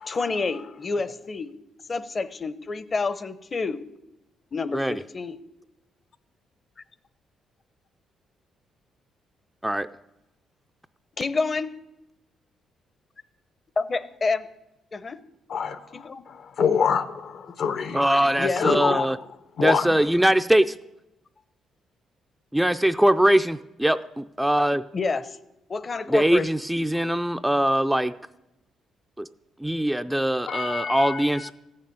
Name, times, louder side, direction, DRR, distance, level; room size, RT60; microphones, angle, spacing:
voice 1, 0.1-1.5 1.9-3.8 4.5-5.4 11.2-11.7 13.8-14.5 14.9-15.2 15.9-16.2 18.4-18.7 24.9-25.4 25.7-26.5, left 4 dB, 35° left, 15 dB, 0.8 m, -28 dB
voice 2, 15.5-18.1 18.6-19.1 19.6-19.9 30.5-31.5, left 6 dB, 65° left, 12 dB, 1.0 m, -26 dB
voice 3, 17.9-19.2 19.6-20.7 22.5-24.8 26.1-28.1 29.2-29.3 29.6-31.5, right 1 dB, 5° right, 9 dB, 0.4 m, -22 dB
15.0 x 6.7 x 9.6 m, 0.92 s
cardioid pair, 90°, 0 cm